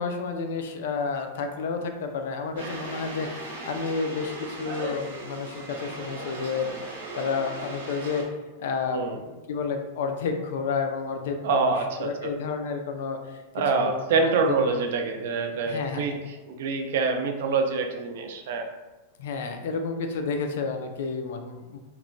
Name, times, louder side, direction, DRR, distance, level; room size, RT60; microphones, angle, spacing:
voice 1, 0.0-8.3 8.6-9.2 9.5-13.4 13.7-14.6 15.6-16.2 19.2-21.8, left 5 dB, 60° left, 5 dB, 0.3 m, -31 dB
sound 1, 2.6-8.2, right 2 dB, 90° right, 0.7 m, -38 dB
voice 2, 11.4-12.3 13.5-16.2 16.5-18.6, right 4 dB, 55° right, 4 dB, 0.3 m, -26 dB
2.9 x 2.1 x 2.5 m, 1.1 s
supercardioid pair, 175°, 0 cm